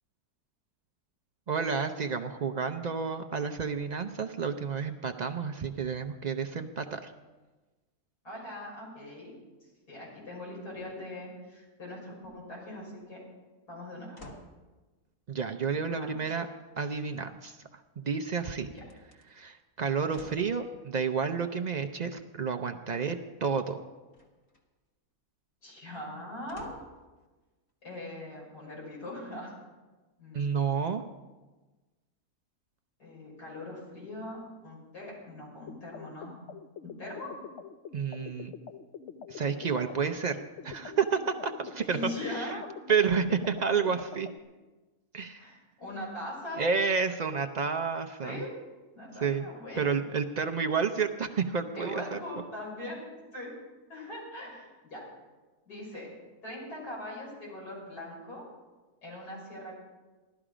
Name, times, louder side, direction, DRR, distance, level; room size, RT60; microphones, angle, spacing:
voice 1, 1.5-7.1 15.3-16.5 16.8-17.6 18.0-18.7 19.3-23.8 30.3-31.0 37.9-38.5 39.3-42.6 42.9-44.3 45.1-45.4 46.6-48.4 49.2-49.5 49.8-52.2, right 6 dB, 85° right, 6 dB, 0.3 m, -30 dB
voice 2, 8.2-9.3 9.9-13.2 13.7-14.3 15.8-16.4 18.6-18.8 25.6-26.7 27.8-29.5 30.2-30.7 33.0-36.3 36.8-37.4 41.9-42.6 45.4-46.6 48.2-48.5 48.9-49.9 51.7-53.0 53.3-53.5 53.9-55.0 55.7-56.1 56.4-58.4 59.0-59.7, left 1 dB, 80° left, -4 dB, 6.7 m, -41 dB
sound 1, 14.2-14.6 17.1-17.8 18.8-19.2 20.1-20.6 24.1-24.7 26.5-27.0 27.7-27.8, left 1 dB, 45° left, 1.9 m, -50 dB
sound 2, 35.7-44.4, left 7 dB, 60° left, 0.8 m, -45 dB
16.5 x 12.5 x 5.0 m, 1.2 s
omnidirectional pair, 1.6 m